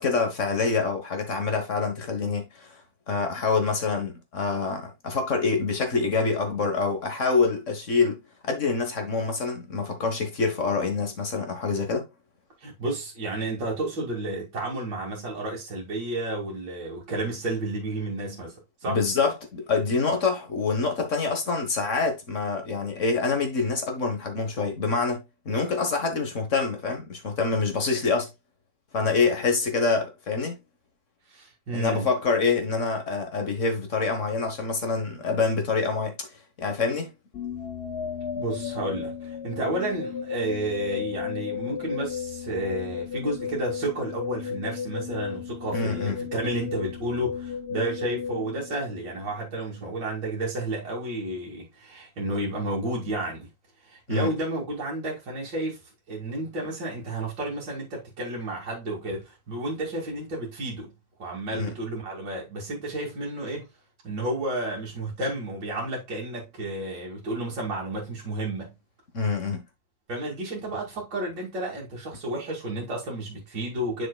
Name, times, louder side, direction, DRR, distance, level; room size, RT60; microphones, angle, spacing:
voice 1, 0.0-2.8 3.1-8.2 8.5-12.1 18.9-28.3 28.9-30.5 31.7-36.3 36.6-37.1 45.7-46.2 54.1-54.3 61.5-61.7 69.1-69.6, left 4 dB, 45° left, 1.5 m, -26 dB
voice 2, 12.6-18.5 18.8-19.0 31.3-32.1 38.4-53.5 53.9-55.8 56.1-60.9 61.2-63.6 64.0-68.7 70.1-74.1, right 1 dB, 65° right, 2.9 m, -31 dB
sound 1, 37.3-49.4, left 7 dB, 70° left, 0.6 m, -34 dB
7.6 x 6.5 x 2.3 m
omnidirectional pair, 2.1 m